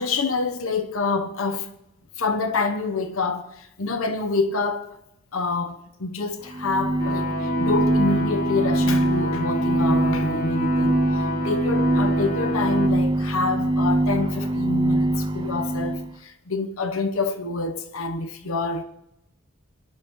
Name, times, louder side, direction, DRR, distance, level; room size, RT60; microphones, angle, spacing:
voice 1, 0.0-1.7 2.2-5.0 5.3-18.8, left 3 dB, 85° left, 1.0 m, -27 dB
sound 1, 6.4-16.1, right 1 dB, 20° right, 0.6 m, -23 dB
sound 2, 7.0-12.9, left 1 dB, 40° left, 1.4 m, -30 dB
21.5 x 12.0 x 3.1 m
head